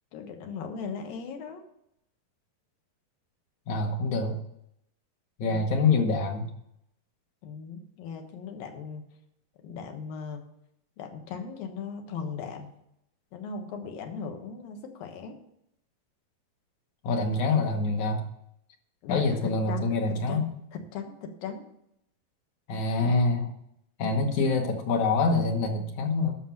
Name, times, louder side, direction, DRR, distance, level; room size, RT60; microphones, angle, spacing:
voice 1, 0.1-1.6 7.4-9.1 9.6-10.4 11.0-12.7 13.3-15.4 19.0-20.4 20.7-21.7, left 5 dB, 85° left, 5 dB, 3.1 m, -38 dB
voice 2, 3.7-4.4 5.4-6.5 17.0-18.3 19.1-20.4 22.7-23.5 24.0-26.4, left 3 dB, 65° left, 3 dB, 2.2 m, -25 dB
11.5 x 6.6 x 5.8 m, 0.77 s
omnidirectional pair, 4.0 m